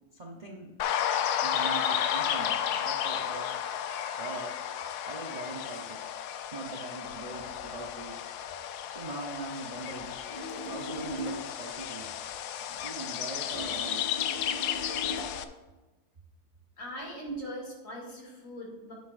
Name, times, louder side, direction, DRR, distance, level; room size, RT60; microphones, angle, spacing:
voice 1, 0.1-0.7 1.4-3.5 4.2-4.6 5.0-6.0 6.5-8.2 8.9-10.1 10.7-12.1 12.7-14.1, right 2 dB, 35° right, 0 dB, 0.7 m, -41 dB
sound 1, 0.8-15.4, left 9 dB, 80° left, 1.1 m, -33 dB
sound 2, 10.3-11.5 13.5-15.5, left 1 dB, 30° left, 0.9 m, -39 dB
voice 2, 16.8-18.9, equal, 55° left, -3 dB, 2.9 m, -40 dB
9.7 x 9.5 x 2.5 m, 1.2 s
omnidirectional pair, 1.7 m